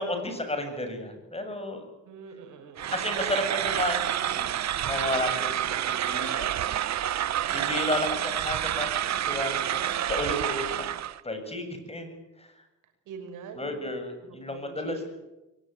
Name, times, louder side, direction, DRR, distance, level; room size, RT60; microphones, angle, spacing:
voice 1, 0.0-1.8 2.9-4.5 4.8-6.7 7.5-10.9 11.2-12.5 13.5-14.9, left 1 dB, 20° left, 6 dB, 7.9 m, -33 dB
voice 2, 2.0-3.0 8.1-8.3 13.1-13.8 14.2-15.0, right 6 dB, 90° right, 5 dB, 6.2 m, -44 dB
sound 1, 2.8-11.2, right 11 dB, 60° right, 1.2 m, -29 dB
23.0 x 18.5 x 9.6 m, 0.98 s
cardioid pair, 90°, 30 cm